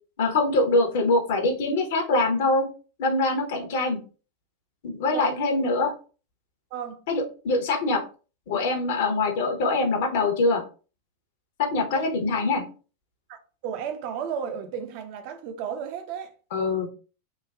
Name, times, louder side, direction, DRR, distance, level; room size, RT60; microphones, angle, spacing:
voice 1, 0.2-2.7 3.0-4.0 4.8-5.9 7.1-8.0 8.5-10.6 11.6-12.6 16.5-16.9, left 3 dB, 55° left, 0.7 m, -24 dB
voice 2, 5.1-5.6 6.7-7.0 11.9-12.1 13.3-16.3, right 7 dB, 45° right, 0.4 m, -34 dB
3.1 x 2.2 x 2.3 m
figure-of-eight pair, 90°, 0 cm